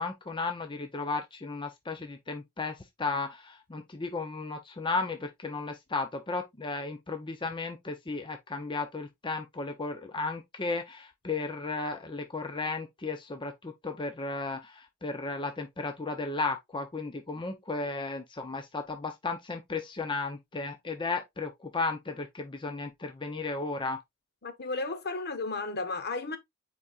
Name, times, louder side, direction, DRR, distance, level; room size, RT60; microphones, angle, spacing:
voice 1, 0.0-24.0, left 3 dB, 20° left, 0.6 m, -34 dB
voice 2, 24.4-26.4, left 3 dB, 50° left, 1.0 m, -33 dB
8.2 x 4.8 x 2.4 m
head